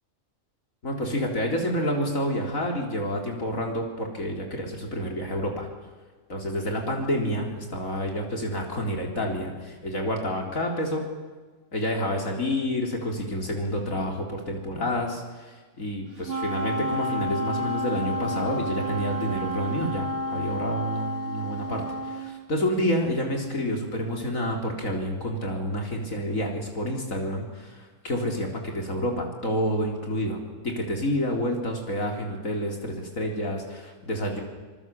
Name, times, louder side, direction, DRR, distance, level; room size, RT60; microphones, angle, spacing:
voice 1, 0.8-5.7 6.3-11.1 11.7-34.4, equal, 75° left, 2 dB, 4.4 m, -29 dB
Wind instrument woodwind instrument, 16.2-22.3, right 1 dB, 45° right, 2.4 m, -30 dB
25.0 x 23.0 x 7.3 m, 1.4 s
omnidirectional pair, 1.4 m